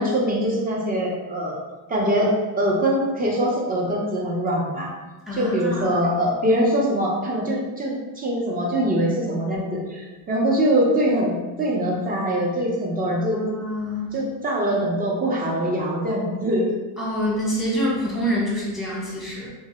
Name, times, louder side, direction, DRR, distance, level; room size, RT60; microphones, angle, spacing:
voice 1, 0.0-1.5 1.9-4.9 5.3-13.4 14.1-16.7, equal, 20° right, -3 dB, 0.5 m, -23 dB
voice 2, 5.3-6.0 13.3-14.1 17.0-19.5, equal, ahead, -6 dB, 0.9 m, -26 dB
2.7 x 2.1 x 3.3 m, 1.2 s
cardioid pair, 130°, 50 cm